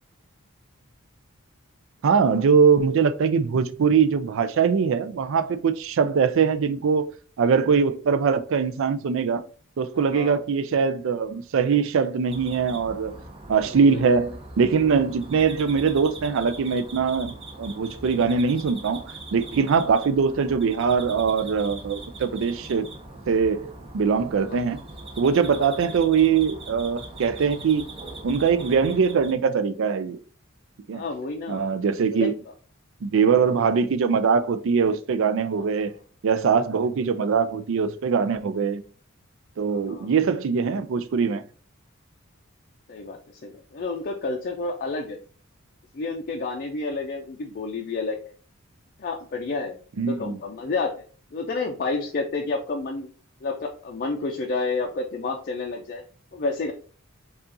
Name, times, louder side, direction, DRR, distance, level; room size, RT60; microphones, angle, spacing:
voice 1, 2.0-7.1 7.4-9.4 9.8-13.2 13.5-22.9 23.3-24.8 25.2-27.9 28.2-30.2 30.9-31.0 31.5-32.3 33.0-35.9 36.2-38.8 39.6-41.4 50.0-50.4, right 6 dB, 65° right, 0.4 m, -22 dB
voice 2, 9.9-10.4 13.6-14.0 19.8-19.9 24.4-24.6 25.5-25.7 30.9-31.6 32.1-32.3 33.4-33.6 35.6-35.7 39.7-40.1 42.9-45.2 45.9-48.3 49.0-50.9 51.3-53.1 53.4-56.0 56.3-56.7, left 3 dB, 45° left, 0.4 m, -30 dB
sound 1, 12.3-29.3, right 2 dB, 25° right, 0.7 m, -41 dB
5.4 x 2.4 x 2.6 m
head